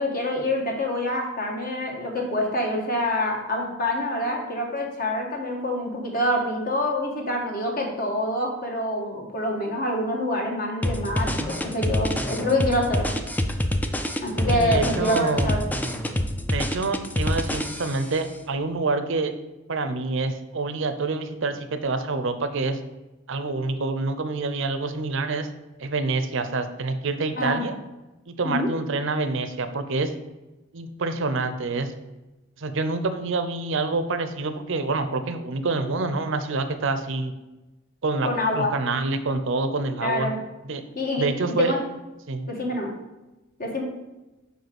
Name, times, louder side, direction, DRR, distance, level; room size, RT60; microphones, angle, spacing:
voice 1, 0.0-13.1 14.2-15.6 27.4-27.6 28.4-28.7 38.2-38.7 40.0-40.3 40.9-41.3 41.6-41.8 42.5-42.9 43.6-43.8, left 1 dB, 45° left, 1 dB, 1.5 m, -26 dB
sound 1, 10.8-18.1, left 1 dB, 10° left, 0.4 m, -26 dB
voice 2, 14.5-15.5 16.5-19.3 19.7-22.8 23.3-25.5 25.8-27.7 28.3-30.1 30.7-31.9 32.6-37.3 38.0-40.3 40.6-40.8 41.2-41.8 42.3-42.5, right 3 dB, 65° right, 9 dB, 0.7 m, -27 dB
5.5 x 4.9 x 5.9 m, 1.1 s
head